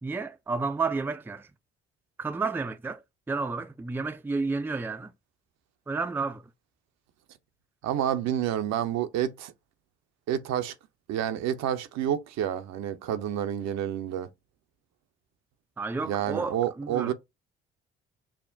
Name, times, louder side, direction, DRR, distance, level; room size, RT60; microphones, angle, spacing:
voice 1, 0.0-1.5 2.2-3.0 3.3-5.1 5.9-6.4 15.8-17.1, right 4 dB, 5° right, 0.4 m, -31 dB
voice 2, 7.8-9.5 10.3-10.7 11.1-14.3 16.0-17.1, right 10 dB, 65° right, 0.6 m, -29 dB
5.7 x 2.1 x 2.6 m
hypercardioid pair, 50°, 29 cm